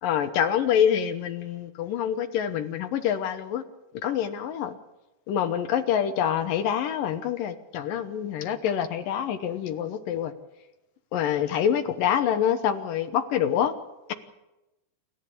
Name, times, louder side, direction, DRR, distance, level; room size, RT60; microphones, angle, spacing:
voice 1, 0.0-3.6 4.0-4.8 5.3-10.3 11.1-13.7 14.1-14.2, left 9 dB, 70° left, 8 dB, 2.2 m, -26 dB
28.5 x 13.5 x 8.5 m, 0.98 s
omnidirectional pair, 5.2 m